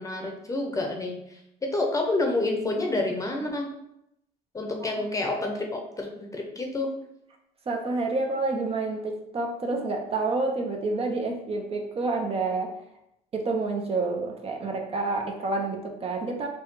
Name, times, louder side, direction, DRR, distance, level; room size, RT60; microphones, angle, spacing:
voice 1, 0.0-3.7 4.5-6.9, left 2 dB, 20° left, 2 dB, 0.8 m, -29 dB
voice 2, 7.7-12.7 13.3-16.5, right 3 dB, 35° right, 2 dB, 0.6 m, -28 dB
4.3 x 2.2 x 4.6 m, 0.81 s
cardioid pair, 110°, 17 cm